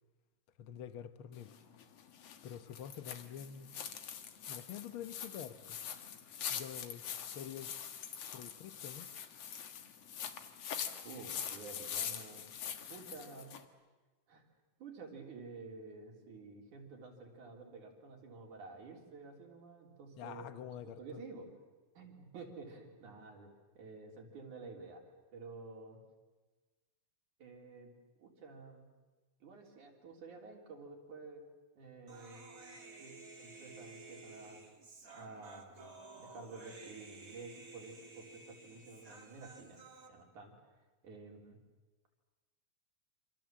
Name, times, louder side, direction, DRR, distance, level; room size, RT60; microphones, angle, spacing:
voice 1, 0.6-1.5 2.4-3.7 4.5-5.8 6.5-7.1 7.3-7.7 8.3-9.1 20.2-21.2, left 9 dB, 70° left, 1.2 m, -47 dB
sound 1, 1.3-13.7, left 8 dB, 55° left, 2.3 m, -44 dB
voice 2, 11.0-12.5 12.9-13.5 14.3-14.4 14.8-21.6 21.9-25.0 25.3-26.0 27.4-28.9 29.4-31.4 31.8-34.6 35.1-39.8 40.1-40.6 41.0-41.6, right 3 dB, 65° right, 5.0 m, -51 dB
Human voice, 32.1-40.1, right 3 dB, 30° right, 2.3 m, -53 dB
28.0 x 26.5 x 7.5 m
omnidirectional pair, 3.9 m